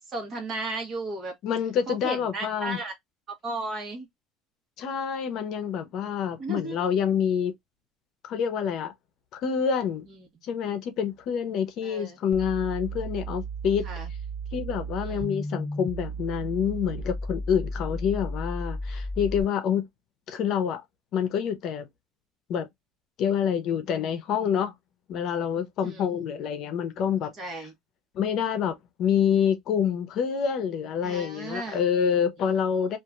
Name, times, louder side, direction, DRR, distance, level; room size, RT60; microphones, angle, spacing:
voice 1, 0.1-1.3 1.9-2.9 3.3-4.1 6.4-6.8 10.1-10.3 11.8-12.2 13.8-14.1 15.0-15.3 25.8-26.2 27.4-27.7 31.0-31.8 32.4-32.5, right 2 dB, 35° right, 1.3 m, -35 dB
voice 2, 1.4-2.8 4.8-7.5 8.2-8.9 9.3-10.1 10.4-13.9 14.5-19.9 20.3-20.8 21.1-21.9 22.5-22.7 23.2-24.7 25.1-27.3 28.1-33.0, left 8 dB, 55° left, 0.7 m, -27 dB
sound 1, 12.3-19.4, right 1 dB, ahead, 0.6 m, -34 dB
2.8 x 2.5 x 2.4 m
cardioid pair, 145°, 0 cm